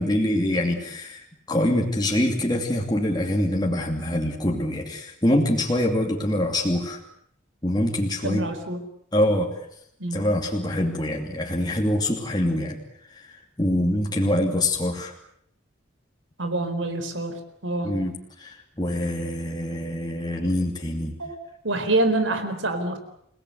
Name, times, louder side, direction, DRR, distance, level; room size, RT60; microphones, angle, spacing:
voice 1, 0.0-7.0 7.6-8.5 9.1-9.5 10.1-12.8 13.1-13.3 13.6-15.1 17.8-21.1, left 1 dB, 20° left, 1 dB, 2.6 m, -24 dB
voice 2, 8.2-8.8 10.0-10.2 16.4-17.4 17.6-17.9 21.2-21.4 21.6-23.0, right 2 dB, 80° right, 8 dB, 4.4 m, -26 dB
29.5 x 18.0 x 8.1 m, 0.71 s
head